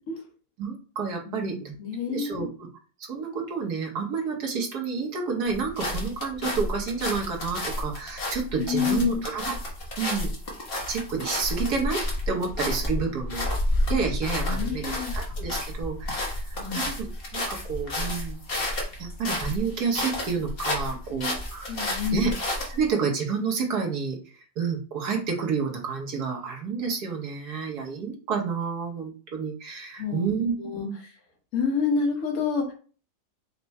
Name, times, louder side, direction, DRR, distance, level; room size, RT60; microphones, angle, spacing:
voice 1, 0.6-1.7 2.1-2.7 3.0-9.6 10.0-10.3 10.9-12.0 12.3-13.5 13.9-18.4 19.0-21.8 22.1-22.3 22.6-30.5 30.8-30.9, right 5 dB, 65° right, 1 dB, 1.4 m, -30 dB
voice 2, 1.8-2.5 8.6-9.2 14.5-15.1 16.6-16.9 21.7-22.3 30.0-31.1 31.5-32.7, left 6 dB, 55° left, 1 dB, 1.5 m, -28 dB
sound 1, 5.5-22.9, left 1 dB, 40° left, 1.1 m, -30 dB
4.5 x 2.2 x 4.1 m, 0.38 s
omnidirectional pair, 2.0 m